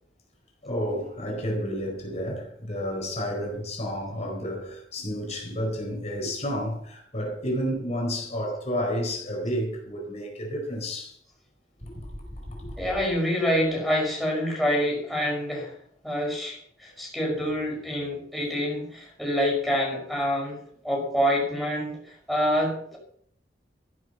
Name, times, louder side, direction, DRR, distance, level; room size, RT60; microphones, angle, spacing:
voice 1, 0.6-11.1 11.8-12.9, equal, 40° left, 4.5 m, -31 dB
voice 2, 12.8-15.7 16.0-20.6 20.8-22.0 22.3-23.0, equal, ahead, 5.6 m, -26 dB
14.5 x 11.0 x 5.8 m
head